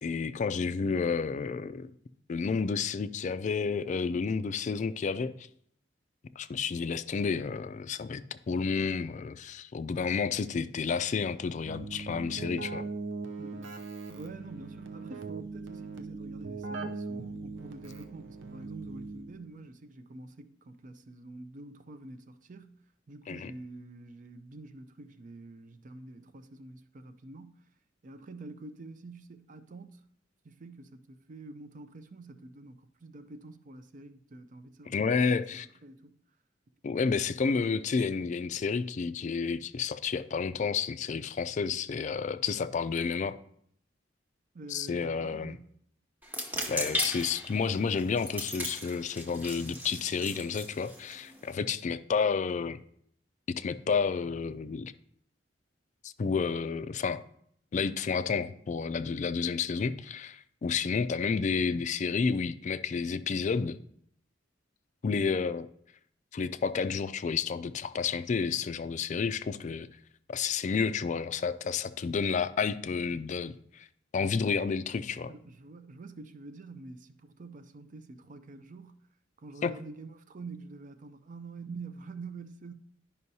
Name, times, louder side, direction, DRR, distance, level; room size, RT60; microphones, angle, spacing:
voice 1, 0.0-1.9 2.3-5.5 6.4-12.8 23.3-23.5 34.9-35.7 36.8-43.3 44.7-45.5 46.7-52.8 53.6-54.9 56.0-57.2 57.7-63.8 65.0-65.7 66.3-69.9 70.3-73.9 74.1-75.3 79.6-79.7, left 5 dB, 40° left, 0.3 m, -30 dB
Keyboard (musical), 11.6-19.5, right 3 dB, 90° right, 0.7 m, -40 dB
voice 2, 13.4-13.8 14.1-27.7 28.0-30.1 30.4-36.2 44.5-45.7 75.3-79.0 79.4-82.7, right 3 dB, 45° right, 0.5 m, -47 dB
sound 1, 46.2-51.6, equal, 10° right, 0.9 m, -37 dB
11.0 x 5.4 x 2.7 m
head